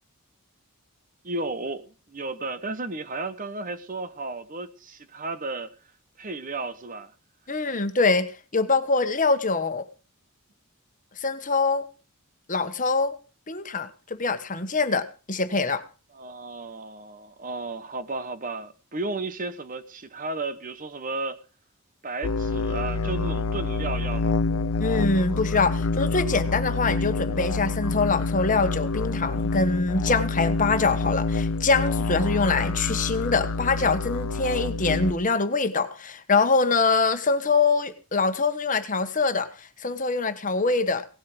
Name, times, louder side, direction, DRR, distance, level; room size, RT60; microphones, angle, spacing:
voice 1, 1.2-5.7 6.2-7.1 16.1-21.4 22.0-24.3, right 3 dB, 35° right, 1.0 m, -33 dB
voice 2, 7.5-9.8 11.2-11.8 12.5-13.2 13.5-13.9 14.2-15.8 24.8-41.1, left 4 dB, 35° left, 1.3 m, -24 dB
sound 1, 22.2-35.1, left 3 dB, 85° left, 0.8 m, -27 dB
18.0 x 8.4 x 6.2 m
head